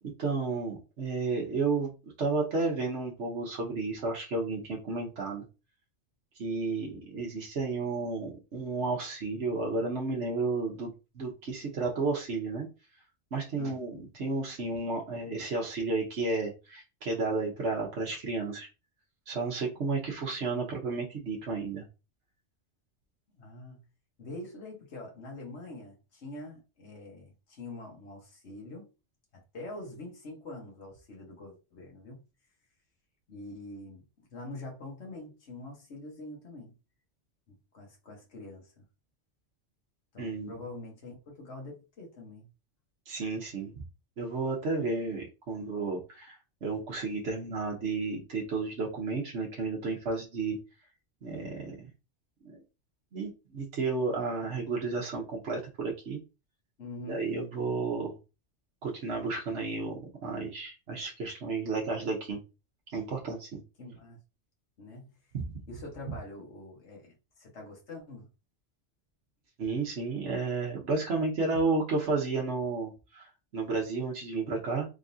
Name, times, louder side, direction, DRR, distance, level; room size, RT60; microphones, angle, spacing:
voice 1, 0.0-1.9 2.2-5.4 6.4-12.7 13.3-18.7 19.3-21.8 40.2-40.6 43.1-43.7 44.2-46.4 46.6-50.6 51.2-51.9 52.4-52.5 53.1-56.2 57.1-58.1 58.8-62.4 62.9-63.6 69.6-74.9, right 3 dB, 75° right, 1.4 m, -32 dB
voice 2, 23.4-23.8 24.2-28.9 29.3-32.2 33.3-36.8 37.5-38.8 40.1-42.5 56.8-57.3 63.8-64.2 64.8-65.1 65.7-68.3, left 2 dB, 70° left, 1.6 m, -45 dB
3.9 x 3.7 x 2.7 m
omnidirectional pair, 1.2 m